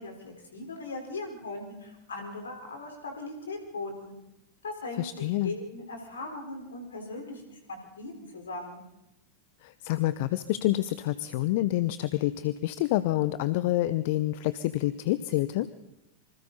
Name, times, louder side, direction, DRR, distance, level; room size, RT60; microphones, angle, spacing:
voice 1, 0.0-4.1 4.6-8.8, left 2 dB, 70° left, 3 dB, 4.4 m, -39 dB
voice 2, 5.0-5.5 9.6-15.7, left 15 dB, 50° left, 15 dB, 0.7 m, -27 dB
26.5 x 25.0 x 4.1 m, 0.91 s
figure-of-eight pair, 90°, 0 cm